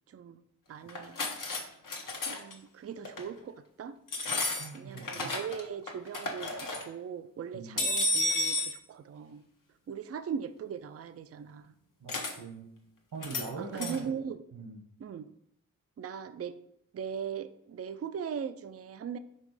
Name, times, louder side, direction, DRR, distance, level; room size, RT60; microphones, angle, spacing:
voice 1, 0.1-0.4 0.7-1.2 2.3-4.0 4.7-9.4 9.9-11.7 13.6-14.4 15.0-15.3 16.0-16.6 16.9-19.2, right 7 dB, 45° right, 12 dB, 0.4 m, -39 dB
sound 1, 0.9-1.6 1.9-2.5 3.0-3.3 4.1-5.6 5.9-6.8 7.8-8.7 12.1-12.3 13.2-13.5 13.7-14.0, left 2 dB, 65° left, 1.1 m, -32 dB
voice 2, 4.6-5.4 7.5-7.8 12.0-12.7 13.1-14.1 14.5-14.8, right 4 dB, 70° right, -1 dB, 1.2 m, -42 dB
5.3 x 3.7 x 4.9 m, 0.70 s
cardioid pair, 70°, 34 cm